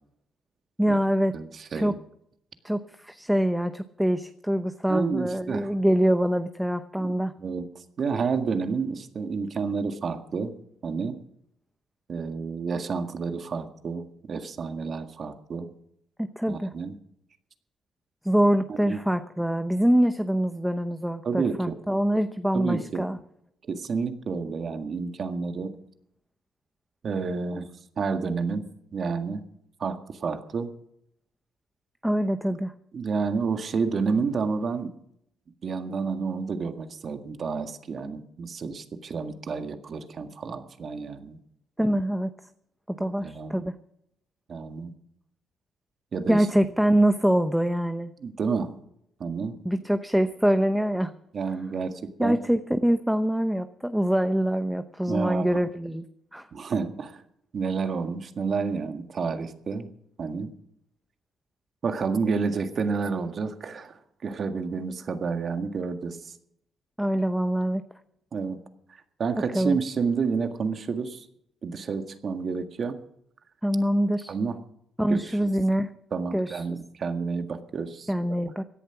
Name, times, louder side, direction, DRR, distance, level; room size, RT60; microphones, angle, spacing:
voice 1, 0.8-1.3 1.7-1.9 2.6-7.3 16.2-16.7 18.2-23.2 32.0-32.7 41.8-42.3 42.9-43.7 46.3-48.1 49.6-51.1 52.2-56.0 56.3-56.5 67.0-67.8 69.5-69.8 73.6-74.3 75.0-75.9 76.3-76.6 78.1-78.6, right 1 dB, 5° right, 10 dB, 0.8 m, -24 dB
voice 2, 1.3-2.0 4.9-5.7 7.0-7.1 7.4-10.5 10.8-11.2 12.1-15.7 16.5-16.9 18.9-19.0 21.2-21.8 22.5-23.1 23.6-25.8 27.0-27.7 28.0-28.7 28.9-29.4 29.8-30.7 32.9-34.9 35.6-41.4 41.8-42.0 43.0-43.6 44.5-44.9 46.1-46.5 48.2-48.7 49.2-49.6 51.3-52.4 55.1-55.6 56.5-57.2 57.5-59.9 60.2-60.5 61.8-66.4 68.3-68.6 68.9-71.3 71.6-73.0 74.3-74.6 75.1-75.4 76.1-78.1, right 5 dB, 50° right, 7 dB, 1.8 m, -30 dB
17.0 x 11.0 x 5.9 m, 0.74 s
cardioid pair, 90°, 0 cm